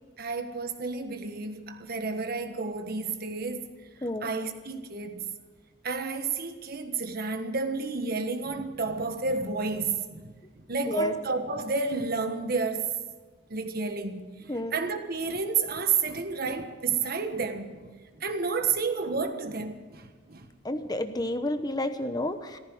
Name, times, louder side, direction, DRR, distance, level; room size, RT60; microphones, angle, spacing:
voice 1, 0.2-3.7 4.0-5.3 5.8-13.0 13.5-20.5, right 4 dB, 55° right, 1.4 m, -31 dB
voice 2, 20.6-22.6, left 1 dB, 20° left, 0.9 m, -30 dB
14.5 x 14.5 x 6.4 m
head